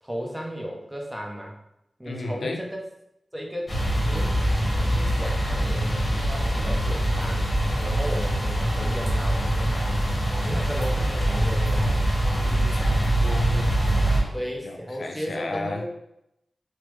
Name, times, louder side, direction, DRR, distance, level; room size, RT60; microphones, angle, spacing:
voice 1, 0.0-1.6 2.0-2.8 3.3-3.7 4.1-4.3 4.7-7.5 7.8-10.0 10.4-12.0 14.3-15.9, equal, 10° right, 0 dB, 0.6 m, -34 dB
voice 2, 2.1-2.6 12.4-13.7 14.0-14.4 14.6-15.8, left 2 dB, 80° left, 3 dB, 0.3 m, -33 dB
sound 1, 3.7-14.2, right 1 dB, 40° left, 0.9 m, -24 dB
3.2 x 2.0 x 3.1 m, 0.82 s
wide cardioid pair, 85°, 0 cm